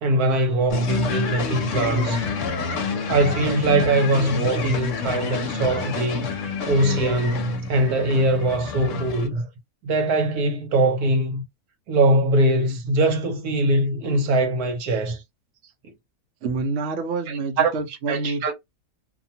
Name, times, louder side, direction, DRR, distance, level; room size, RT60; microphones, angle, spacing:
voice 1, 0.0-2.3 3.1-6.3 6.7-9.4 9.8-11.4 11.9-15.2 17.6-17.7 18.1-18.5, right 2 dB, 80° right, 1.3 m, -21 dB
sound 1, 0.7-9.3, left 5 dB, 60° left, 0.9 m, -29 dB
voice 2, 9.1-9.5 16.4-18.5, right 3 dB, 60° right, 1.0 m, -29 dB
2.8 x 2.3 x 2.7 m
omnidirectional pair, 1.6 m